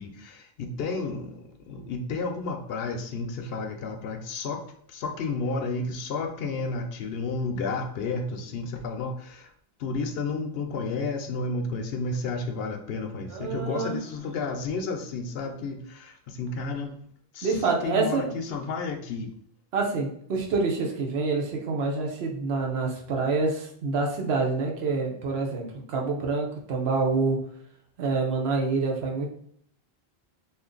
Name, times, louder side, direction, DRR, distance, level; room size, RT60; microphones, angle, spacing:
voice 1, 0.0-4.6 4.9-9.5 9.8-17.0 17.3-19.3, left 3 dB, 75° left, 5 dB, 0.8 m, -32 dB
voice 2, 13.3-14.0 17.4-18.3 19.7-27.4 28.0-29.3, right 4 dB, 80° right, 1 dB, 1.0 m, -27 dB
2.6 x 2.4 x 3.7 m, 0.64 s
omnidirectional pair, 1.0 m